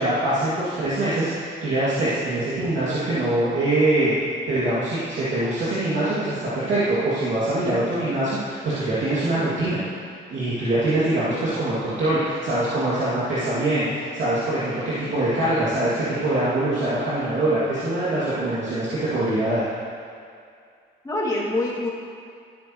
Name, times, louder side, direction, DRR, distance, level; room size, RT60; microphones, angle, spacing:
voice 1, 0.0-4.1 4.5-9.8 10.3-19.7, right 1 dB, 70° right, -11 dB, 2.6 m, -23 dB
voice 2, 15.3-16.0 21.0-21.9, left 2 dB, 20° left, -6 dB, 2.4 m, -27 dB
15.0 x 8.3 x 3.2 m, 2.4 s
cardioid pair, 90°, 20 cm